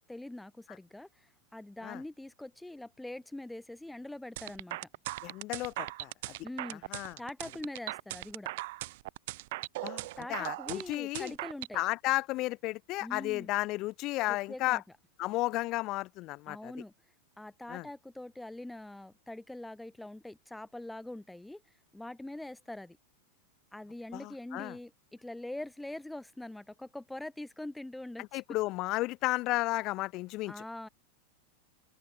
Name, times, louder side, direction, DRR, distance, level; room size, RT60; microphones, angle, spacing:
voice 1, 0.1-4.9 6.4-8.5 10.2-11.8 13.0-13.5 14.3-14.8 16.5-16.9 17.4-21.6 21.9-23.0 23.7-28.4 30.5-30.9, left 1 dB, 5° left, 6.5 m, -43 dB
sound 1, 4.4-11.7, right 19 dB, 50° right, 3.5 m, -39 dB
voice 2, 5.2-6.3 6.9-7.2 9.8-11.3 11.7-14.8 15.2-16.7 17.7-17.9 24.1-24.8 28.2-30.5, left 19 dB, 40° left, 2.6 m, -33 dB
open air
figure-of-eight pair, 90°, 0 cm